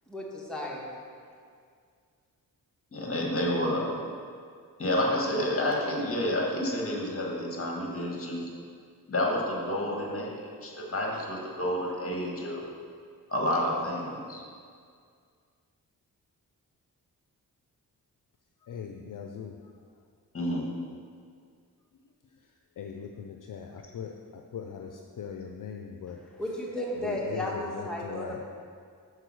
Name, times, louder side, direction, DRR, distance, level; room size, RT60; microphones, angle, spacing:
voice 1, 0.1-0.9 26.4-28.4, left 1 dB, ahead, -4 dB, 1.5 m, -34 dB
voice 2, 2.9-3.9 4.8-8.5 9.1-12.6 13.3-14.4 20.3-20.6, left 1 dB, 40° left, -1 dB, 1.7 m, -29 dB
voice 3, 18.7-19.6 22.8-26.2 27.0-28.4, left 7 dB, 60° left, 3 dB, 0.5 m, -40 dB
6.6 x 4.5 x 6.2 m, 2.1 s
cardioid pair, 70°, 36 cm